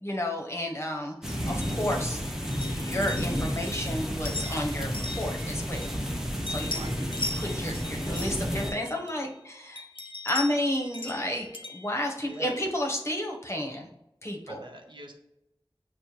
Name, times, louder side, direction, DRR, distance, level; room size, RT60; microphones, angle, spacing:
voice 1, 0.0-2.2 2.7-6.1 6.5-7.1 7.4-9.8 10.2-13.9 14.2-14.6, left 1 dB, 30° left, 0 dB, 0.9 m, -32 dB
sound 1, 1.2-8.7, equal, 5° right, 0.7 m, -31 dB
voice 2, 1.2-1.6 6.7-7.1 12.2-12.5 14.5-15.1, right 1 dB, 60° right, 2 dB, 0.7 m, -44 dB
sound 2, 1.5-6.2 6.5-9.4 9.8-12.8, left 2 dB, 65° left, 0.5 m, -40 dB
6.2 x 2.1 x 2.9 m, 0.84 s
wide cardioid pair, 45°, 9 cm